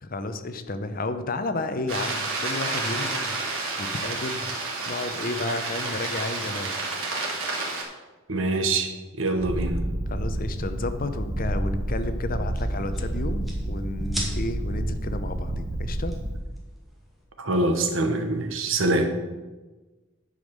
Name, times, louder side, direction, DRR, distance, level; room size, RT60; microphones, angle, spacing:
voice 1, 0.0-4.6 4.9-6.8 10.1-16.1, left 2 dB, 45° left, 9 dB, 0.7 m, -32 dB
sound 1, 1.9-7.8, right 3 dB, 85° right, 2.4 m, -30 dB
voice 2, 8.3-8.9 9.2-9.8 17.4-19.1, right 2 dB, 70° right, 6 dB, 1.2 m, -24 dB
Purr, 9.4-16.4, right 1 dB, 20° right, 0.8 m, -29 dB
sound 2, 10.5-17.2, equal, ahead, 2.0 m, -42 dB
9.9 x 5.3 x 6.4 m, 1.2 s
head